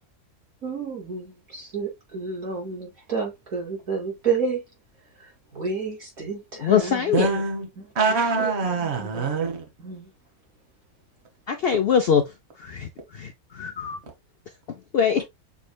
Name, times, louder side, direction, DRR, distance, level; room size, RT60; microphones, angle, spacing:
voice 1, 0.6-4.6 5.5-7.4 7.8-7.9 8.4-9.3 9.8-10.1, right 5 dB, 65° right, 3.3 m, -30 dB
voice 2, 6.6-7.3 11.5-12.3 12.6-14.0 14.9-15.2, left 7 dB, 65° left, 0.6 m, -23 dB
voice 3, 7.1-7.7 7.9-9.6, right 4 dB, 45° right, 1.5 m, -24 dB
7.0 x 3.2 x 2.3 m
omnidirectional pair, 1.6 m